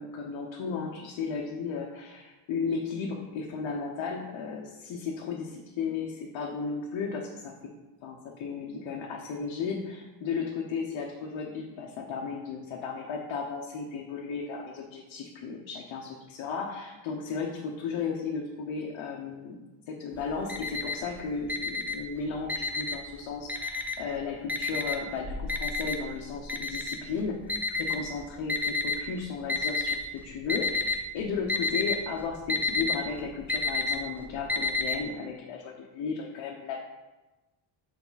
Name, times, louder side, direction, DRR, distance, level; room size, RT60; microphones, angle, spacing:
voice 1, 0.0-7.5 8.0-19.6 19.9-36.8, left 5 dB, 80° left, -1 dB, 1.0 m, -35 dB
Alarm, 20.2-21.1 21.5-23.1 23.5-24.1 24.5-29.0 29.5-30.1 30.4-31.0 31.3-35.0, left 3 dB, 5° right, 0.6 m, -30 dB
7.3 x 4.6 x 4.0 m, 1.1 s
cardioid pair, 110°, 46 cm